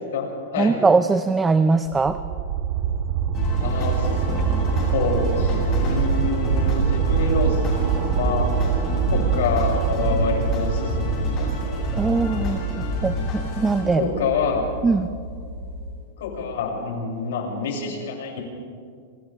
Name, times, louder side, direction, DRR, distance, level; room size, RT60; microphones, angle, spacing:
voice 1, 0.0-0.8 3.6-4.6 4.9-11.6 13.9-14.7 16.2-18.4, left 4 dB, 70° left, -1 dB, 7.1 m, -27 dB
voice 2, 0.6-2.2 11.9-14.1 14.8-15.1, right 4 dB, 10° right, 11 dB, 0.5 m, -21 dB
sound 1, 1.9-14.7 15.1-15.2, right 8 dB, 30° right, 1.4 m, -25 dB
sound 2, 3.3-13.8, left 2 dB, 30° left, 7.4 m, -28 dB
sound 3, 9.2-16.1, equal, 75° right, 6.5 m, -36 dB
28.5 x 27.5 x 3.6 m, 2.1 s
supercardioid pair, 160°, 0 cm